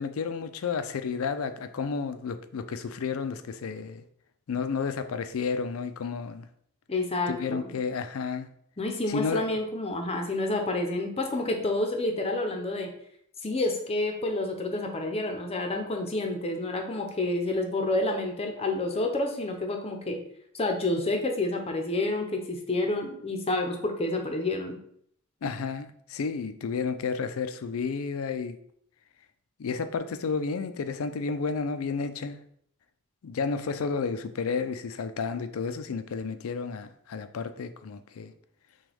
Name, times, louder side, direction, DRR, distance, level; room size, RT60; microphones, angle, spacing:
voice 1, 0.0-4.0 4.5-6.5 7.3-8.5 9.1-9.5 25.4-28.6 29.6-32.4 33.2-38.3, left 5 dB, 85° left, 10 dB, 0.4 m, -31 dB
voice 2, 6.9-7.7 8.8-12.9 13.4-20.2 20.5-24.8, left 2 dB, 30° left, 3 dB, 0.7 m, -29 dB
6.0 x 2.3 x 3.5 m, 0.66 s
head